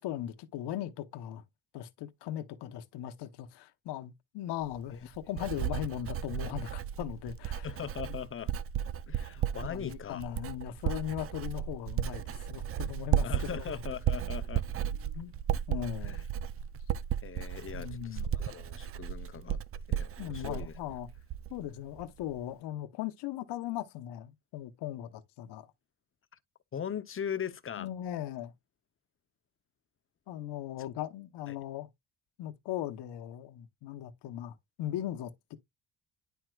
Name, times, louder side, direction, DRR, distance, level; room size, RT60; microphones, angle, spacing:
voice 1, 0.0-1.4 1.7-7.7 9.6-13.8 15.1-15.3 15.7-16.2 17.7-18.3 20.2-21.1 21.5-25.7 27.8-28.5 30.3-31.9 32.4-35.6, left 12 dB, 80° left, 1.0 m, -38 dB
Writing, 4.6-21.7 22.0-22.4, right 10 dB, 35° right, 0.4 m, -34 dB
voice 2, 7.6-8.5 9.1-10.3 13.2-14.6 16.0-16.2 17.2-19.6 19.9-20.7 26.7-27.9 30.8-30.9 31.5-31.6, left 8 dB, 30° left, 0.7 m, -40 dB
10.0 x 4.5 x 2.3 m
cardioid pair, 110°, 41 cm